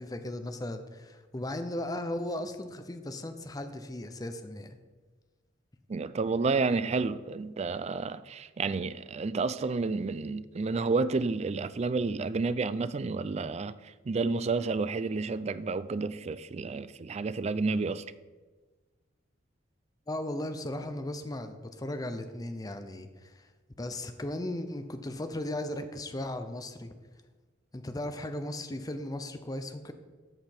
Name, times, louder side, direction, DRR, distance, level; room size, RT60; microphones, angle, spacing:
voice 1, 0.0-4.8 20.1-23.5 23.8-26.9 27.7-29.9, left 1 dB, 20° left, 0.6 m, -36 dB
voice 2, 5.9-18.0, right 4 dB, 35° right, 0.3 m, -30 dB
13.5 x 5.0 x 4.4 m
head